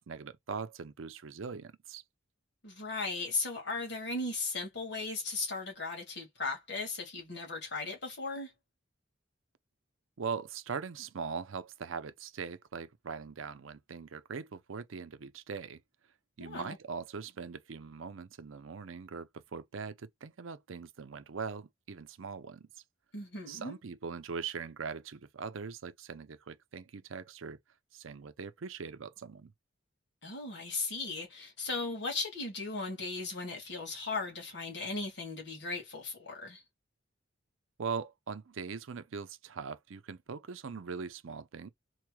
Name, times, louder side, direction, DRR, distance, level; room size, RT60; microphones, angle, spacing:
voice 1, 0.0-2.0 10.2-15.8 16.4-22.7 23.5-27.6 27.9-29.5 37.8-41.7, right 5 dB, 80° right, 0.5 m, -41 dB
voice 2, 2.6-8.5 16.4-16.8 23.1-23.8 30.2-36.6, left 3 dB, 60° left, 2.0 m, -37 dB
4.1 x 3.1 x 2.2 m
head